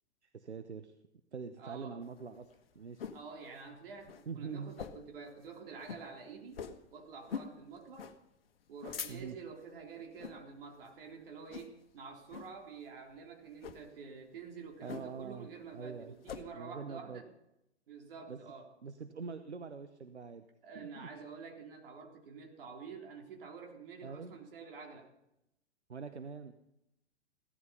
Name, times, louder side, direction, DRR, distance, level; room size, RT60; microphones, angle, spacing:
voice 1, 0.2-0.9 1.3-2.5 2.7-3.1 4.3-4.7 9.1-9.4 14.8-15.5 15.7-16.1 16.5-17.2 18.3-18.4 18.8-20.5 20.7-21.1 24.0-24.3 25.9-26.6, right 5 dB, 80° right, 9 dB, 1.0 m, -44 dB
voice 2, 1.6-2.0 3.1-8.1 8.7-17.3 17.9-18.7 20.6-25.1, right 5 dB, 55° right, 2 dB, 3.7 m, -48 dB
sound 1, 2.1-3.3 3.7-3.8 4.0-4.3 4.7-5.2 5.5-5.6 5.8-6.1 6.5-6.8 7.3-7.6 8.0-8.2 8.6-9.5 10.1-10.4 10.8-11.1 11.5-11.9 12.3-12.5 13.5-13.8 14.9-15.3 15.6-16.4, left 7 dB, 60° left, 1.3 m, -44 dB
16.5 x 13.0 x 5.6 m, 0.84 s
figure-of-eight pair, 105°, 33 cm